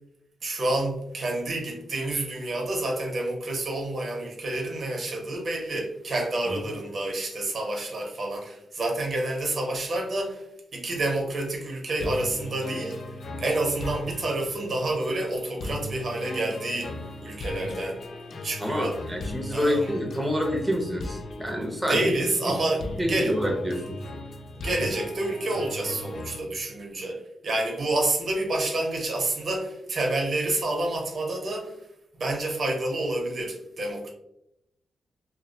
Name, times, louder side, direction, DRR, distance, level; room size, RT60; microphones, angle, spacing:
voice 1, 0.4-10.4 10.7-13.0 13.4-18.0 18.4-19.0 19.5-19.9 21.9-23.4 24.5-31.8 32.1-34.1, right 2 dB, 60° right, 1 dB, 0.6 m, -29 dB
sound 1, 12.0-26.4, left 2 dB, 65° left, 0.3 m, -38 dB
voice 2, 18.6-22.1 22.5-22.6 23.0-24.0 24.7-24.8, equal, 10° right, 1 dB, 0.5 m, -27 dB
2.2 x 2.1 x 2.6 m, 0.81 s
cardioid pair, 75°, 0 cm